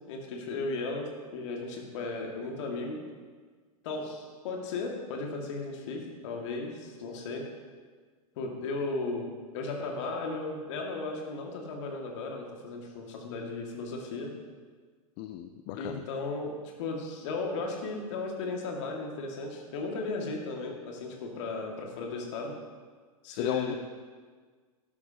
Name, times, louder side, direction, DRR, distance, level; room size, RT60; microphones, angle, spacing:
voice 1, 0.1-3.0 3.8-7.4 8.4-14.3 15.7-16.5 16.8-22.5 23.2-23.8, left 3 dB, 50° left, 1 dB, 2.1 m, -35 dB
voice 2, 15.2-16.0 23.3-23.7, left 11 dB, 35° left, 7 dB, 0.5 m, -34 dB
12.5 x 10.5 x 2.9 m, 1.5 s
figure-of-eight pair, 95°, 19 cm